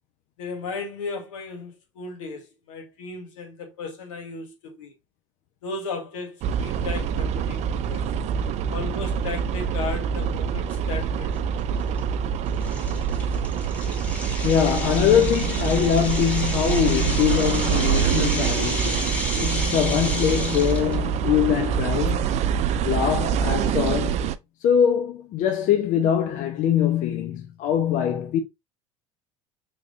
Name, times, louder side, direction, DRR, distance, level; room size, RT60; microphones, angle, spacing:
voice 1, 0.4-4.9 5.6-8.1 8.7-11.3, left 4 dB, 80° left, 1.2 m, -35 dB
sound 1, 6.4-24.3, right 7 dB, 45° right, 0.4 m, -25 dB
sound 2, 10.7-10.8 11.4-11.5 12.0-12.1 12.6-20.9, left 1 dB, 10° left, 1.3 m, -32 dB
voice 2, 14.4-22.3 22.8-24.3 24.6-28.4, left 9 dB, 50° left, 0.6 m, -23 dB
3.6 x 3.3 x 2.5 m
hypercardioid pair, 80°, 16 cm